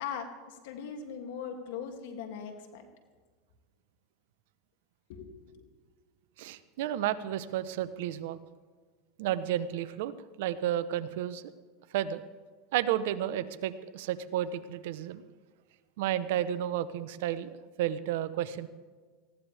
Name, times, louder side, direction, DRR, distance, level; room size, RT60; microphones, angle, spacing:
voice 1, 0.0-2.8 5.1-5.7, left 7 dB, 75° left, 5 dB, 2.6 m, -40 dB
voice 2, 6.4-8.4 9.2-10.1 10.4-11.4 11.9-12.2 12.7-15.2 16.0-18.7, right 11 dB, 75° right, 13 dB, 0.9 m, -32 dB
19.5 x 15.5 x 3.5 m, 1.5 s
supercardioid pair, 115°, 0 cm